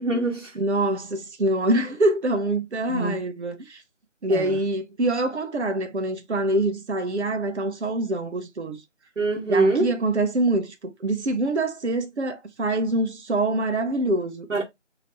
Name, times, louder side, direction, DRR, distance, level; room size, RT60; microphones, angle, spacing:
voice 1, 0.0-0.6 2.9-3.2 4.3-4.5 9.2-9.9 14.5-14.6, right 2 dB, 85° right, 1.1 m, -23 dB
voice 2, 0.6-3.8 4.2-8.8 9.5-14.5, right 2 dB, 65° right, 0.8 m, -25 dB
3.1 x 2.8 x 2.9 m
figure-of-eight pair, 165°, 37 cm